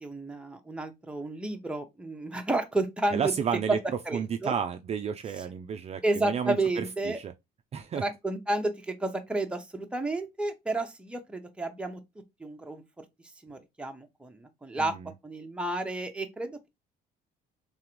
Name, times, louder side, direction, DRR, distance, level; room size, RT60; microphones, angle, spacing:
voice 1, 0.0-3.3 3.7-3.8 4.1-4.5 6.0-7.2 8.0-12.0 12.4-13.0 13.4-14.9 15.2-16.7, right 2 dB, 5° right, 0.8 m, -31 dB
voice 2, 3.1-3.8 4.1-7.3 7.7-8.0 14.8-15.1, right 7 dB, 40° right, 0.4 m, -32 dB
3.7 x 3.4 x 3.1 m
cardioid pair, 110°, 17 cm